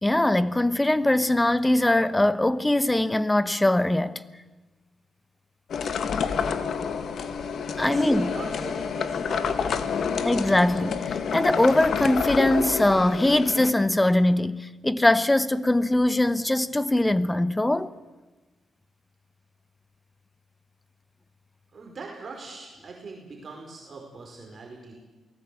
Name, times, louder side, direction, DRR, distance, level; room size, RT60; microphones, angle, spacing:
voice 1, 0.0-4.2 7.8-8.3 10.2-17.9, left 1 dB, 10° left, 1.0 m, -22 dB
sound 1, 5.7-13.7, left 6 dB, 60° left, 1.7 m, -28 dB
voice 2, 7.7-10.2 21.7-24.9, right 3 dB, 40° right, 4.9 m, -40 dB
28.5 x 19.0 x 8.6 m
cardioid pair, 115°, 0 cm